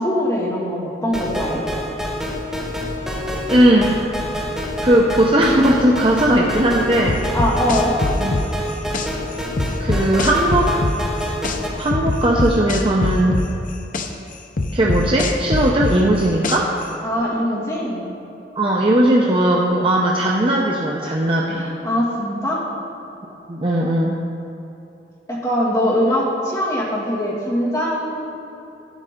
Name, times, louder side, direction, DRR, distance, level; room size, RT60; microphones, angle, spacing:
voice 1, 0.0-1.6 7.3-8.0 17.0-18.1 21.6-22.6 25.3-28.3, equal, 20° left, -5 dB, 2.2 m, -22 dB
sound 1, 1.1-11.7, equal, 5° right, 1.2 m, -27 dB
voice 2, 3.3-3.9 4.8-7.2 8.2-8.4 9.8-10.7 11.8-13.4 14.7-16.7 18.6-21.6 23.5-24.2, right 1 dB, 30° right, -2 dB, 0.7 m, -17 dB
sound 2, 7.1-9.1 9.6-11.6 11.9-14.1 14.6-16.8, left 2 dB, 50° left, 0.7 m, -22 dB
12.0 x 9.6 x 3.7 m, 3.0 s
head